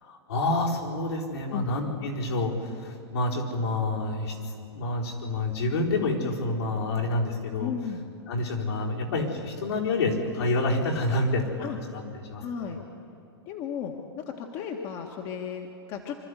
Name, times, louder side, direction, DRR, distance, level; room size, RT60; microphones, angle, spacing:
voice 1, 0.0-4.4 4.7-7.7 8.3-12.4, left 2 dB, 75° left, -3 dB, 4.5 m, -28 dB
voice 2, 7.6-8.1 11.6-11.8 12.4-12.8 13.4-16.2, left 7 dB, 40° left, 2 dB, 1.6 m, -35 dB
25.5 x 13.0 x 8.2 m, 2.7 s
hypercardioid pair, 115°, 14 cm